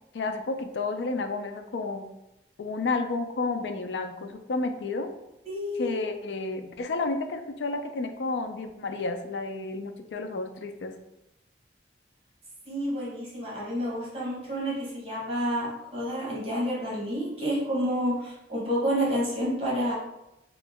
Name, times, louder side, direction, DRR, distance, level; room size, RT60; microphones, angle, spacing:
voice 1, 0.1-2.1 2.6-5.1 5.8-10.9, left 3 dB, 80° left, 7 dB, 0.4 m, -31 dB
voice 2, 5.4-6.2 12.6-19.9, equal, 35° right, -6 dB, 1.2 m, -29 dB
2.9 x 2.5 x 3.6 m, 0.91 s
head